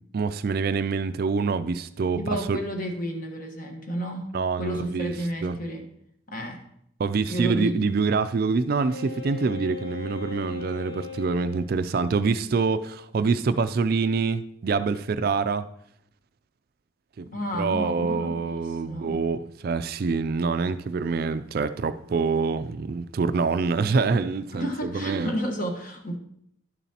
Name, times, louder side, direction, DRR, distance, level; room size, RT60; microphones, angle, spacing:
voice 1, 0.1-2.6 4.3-5.1 5.4-5.6 7.0-15.6 17.2-17.3 17.6-25.3, right 4 dB, 50° right, 13 dB, 0.3 m, -26 dB
voice 2, 2.2-5.9 6.3-6.6 7.3-8.0 17.3-19.2 24.5-26.2, equal, 45° left, 3 dB, 1.3 m, -32 dB
Wind instrument woodwind instrument, 8.8-11.7, left 5 dB, 25° left, 2.1 m, -38 dB
11.5 x 7.0 x 2.9 m, 0.73 s
head